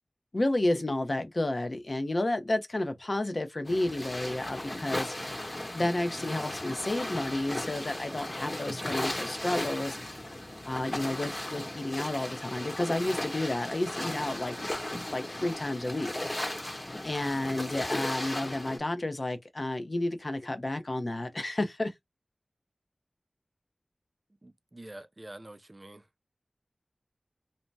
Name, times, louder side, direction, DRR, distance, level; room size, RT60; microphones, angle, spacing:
voice 1, 0.3-5.1 5.7-10.0 10.7-14.5 15.1-16.1 17.0-21.9, left 1 dB, 50° left, 0.6 m, -31 dB
sound 1, 3.6-18.8, left 1 dB, 30° left, 1.0 m, -36 dB
voice 2, 24.4-26.1, right 1 dB, 35° right, 0.4 m, -47 dB
2.7 x 2.1 x 3.2 m
wide cardioid pair, 60°, 0 cm